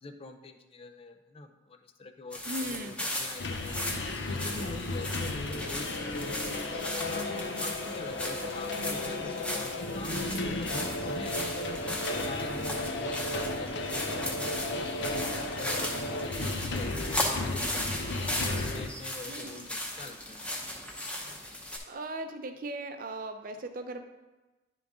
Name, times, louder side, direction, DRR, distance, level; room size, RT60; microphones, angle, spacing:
voice 1, 0.0-3.9 4.3-6.6 7.0-11.8 12.1-15.2 15.6-18.1 18.4-20.4, left 3 dB, 30° left, 6 dB, 0.5 m, -44 dB
sound 1, 2.3-21.8, left 1 dB, 5° left, 0.9 m, -37 dB
voice 2, 2.4-3.0 19.3-19.5 21.9-24.0, right 2 dB, 50° right, 7 dB, 0.6 m, -38 dB
sound 2, 3.4-18.9, left 2 dB, 70° left, 0.7 m, -34 dB
11.0 x 3.8 x 3.6 m, 1.1 s
head